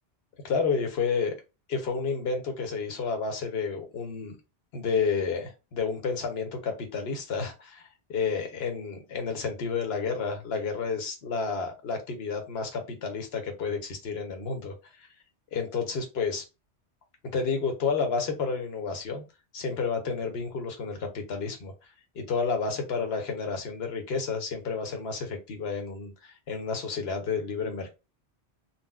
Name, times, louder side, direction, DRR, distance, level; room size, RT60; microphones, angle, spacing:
voice 1, 0.4-1.3 1.7-4.3 4.7-15.1 15.5-16.4 17.3-19.2 19.5-21.7 22.1-27.9, left 5 dB, 65° left, 4 dB, 1.1 m, -30 dB
4.0 x 2.2 x 2.2 m, 0.27 s
omnidirectional pair, 1.1 m